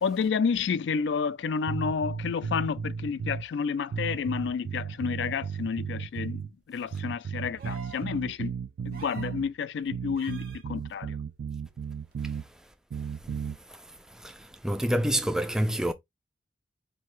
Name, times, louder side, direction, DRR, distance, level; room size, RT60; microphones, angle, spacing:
voice 1, 0.0-6.4 6.7-8.5 8.9-11.2, left 6 dB, 80° left, 0.3 m, -30 dB
sound 1, 1.7-3.5 3.9-6.5 6.9-9.5 9.9-12.5 12.9-13.6, right 6 dB, 85° right, 0.4 m, -34 dB
sound 2, 7.6-8.1 8.9-9.4 10.2-10.6 12.1-12.2, right 3 dB, 55° right, 1.0 m, -46 dB
voice 2, 14.2-15.9, right 1 dB, 5° right, 0.3 m, -27 dB
4.4 x 2.7 x 3.1 m
head